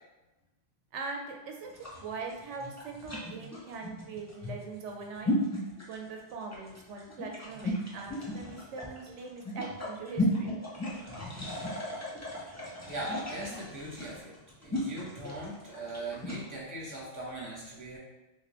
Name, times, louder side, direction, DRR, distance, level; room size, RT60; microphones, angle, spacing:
voice 1, 0.9-5.3 5.9-10.5, right 4 dB, 85° right, 1 dB, 0.9 m, -41 dB
sound 1, 1.7-16.5, left 1 dB, 20° left, 0.6 m, -36 dB
voice 2, 12.9-18.0, right 1 dB, 15° right, -5 dB, 1.0 m, -40 dB
3.4 x 2.9 x 3.0 m, 1.1 s
omnidirectional pair, 1.2 m